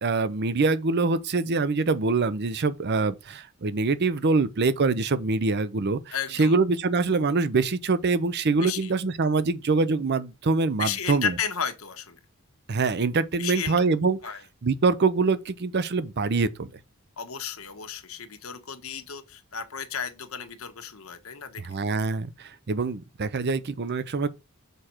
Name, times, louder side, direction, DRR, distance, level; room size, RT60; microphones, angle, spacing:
voice 1, 0.0-11.3 12.7-14.2 14.6-16.7 21.6-24.3, right 3 dB, 50° right, 0.6 m, -24 dB
voice 2, 6.1-6.5 8.5-8.9 10.8-12.2 13.4-13.7 14.2-14.4 17.2-21.6, left 7 dB, 80° left, 1.2 m, -33 dB
6.8 x 4.9 x 4.4 m
head